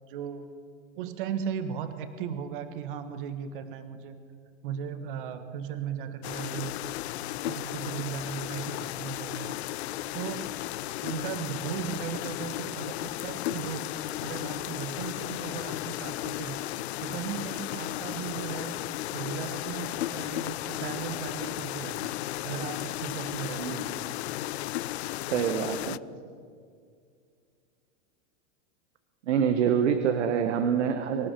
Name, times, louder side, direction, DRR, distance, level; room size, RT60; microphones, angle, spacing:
voice 1, 0.1-0.5 1.0-4.2 4.6-6.7 7.5-9.6 10.1-10.5 11.0-13.9 14.2-16.6 17.0-18.8 19.1-22.1 22.4-24.0, right 8 dB, 45° right, 9 dB, 1.5 m, -37 dB
sound 1, 6.2-26.0, left 16 dB, 65° left, 0.5 m, -34 dB
voice 2, 23.6-24.0 25.3-26.0 29.3-31.3, right 7 dB, 75° right, 7 dB, 1.6 m, -26 dB
25.0 x 15.0 x 7.0 m, 2.2 s
supercardioid pair, 175°, 35 cm